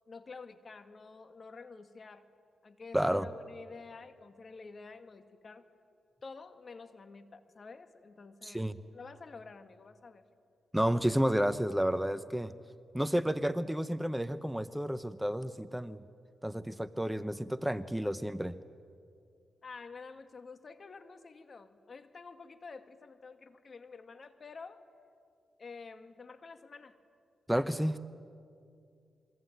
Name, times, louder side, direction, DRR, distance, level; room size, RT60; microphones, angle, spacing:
voice 1, 0.1-2.3 2.6-5.7 6.2-10.2 19.6-24.8 25.6-27.0, left 4 dB, 50° left, 9 dB, 2.1 m, -49 dB
voice 2, 2.9-3.3 8.4-8.8 10.7-12.5 12.9-16.0 16.4-18.6 27.5-28.0, equal, 5° right, 13 dB, 1.0 m, -31 dB
27.0 x 23.5 x 9.3 m, 2.3 s
supercardioid pair, 55°, 0 cm